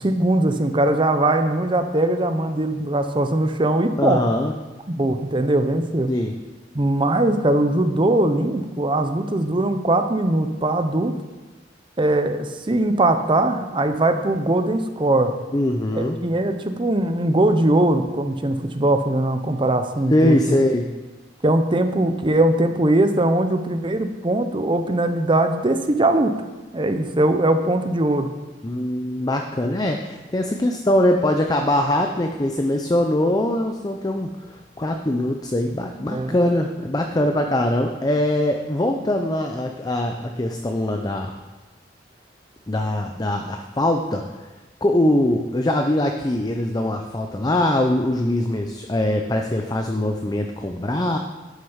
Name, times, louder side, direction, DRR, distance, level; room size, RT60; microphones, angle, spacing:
voice 1, 0.0-4.2 4.9-6.1 6.7-11.1 12.0-15.3 15.9-20.6 21.4-26.3 26.7-28.3 36.1-36.4, right 1 dB, 25° right, 8 dB, 0.7 m, -20 dB
voice 2, 4.0-4.5 6.1-6.3 15.5-16.2 20.1-20.9 28.6-41.3 42.7-44.2 44.8-51.2, left 1 dB, 20° left, 4 dB, 0.6 m, -22 dB
11.5 x 6.6 x 5.6 m, 1.2 s
head